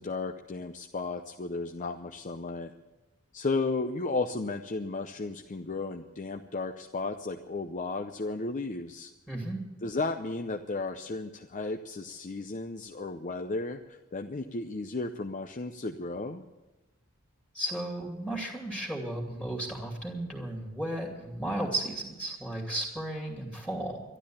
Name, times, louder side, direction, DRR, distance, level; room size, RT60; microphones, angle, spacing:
voice 1, 0.0-2.7 3.3-9.1 9.8-16.4, left 3 dB, 35° left, 5 dB, 0.6 m, -34 dB
voice 2, 9.3-9.6 17.5-24.0, right 1 dB, 5° left, 0 dB, 2.4 m, -34 dB
12.0 x 12.0 x 8.6 m, 1.1 s
head